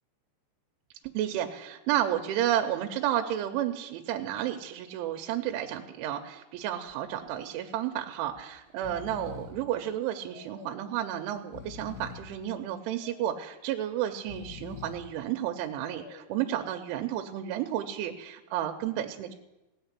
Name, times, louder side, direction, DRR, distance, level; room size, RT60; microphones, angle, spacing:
voice 1, 1.1-19.3, right 11 dB, 85° right, 4 dB, 3.2 m, -32 dB
Breathing, 6.6-6.9 7.3-7.4 8.2-8.4 8.7-9.7 10.3-10.9 11.4-12.4 13.0-13.6 14.1-15.1 15.7-16.4, left 7 dB, 75° left, 2.2 m, -46 dB
17.5 x 6.4 x 8.1 m, 0.99 s
omnidirectional pair, 5.4 m